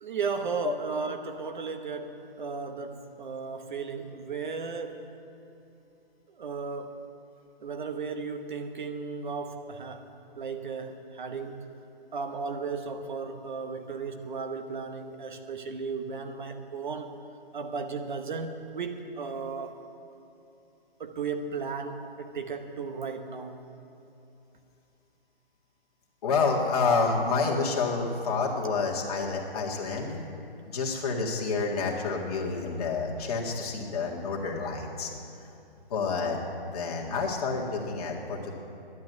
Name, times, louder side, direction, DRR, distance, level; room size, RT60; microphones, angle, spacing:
voice 1, 0.0-5.1 6.4-7.0 7.6-11.7 12.1-17.2 17.5-19.8 21.0-23.7, right 5 dB, 50° right, 7 dB, 1.0 m, -35 dB
voice 2, 26.2-30.2 30.7-35.1 35.9-36.4 36.7-38.5, left 4 dB, 40° left, -2 dB, 1.9 m, -28 dB
11.0 x 9.4 x 9.3 m, 2.7 s
hypercardioid pair, 150°, 30 cm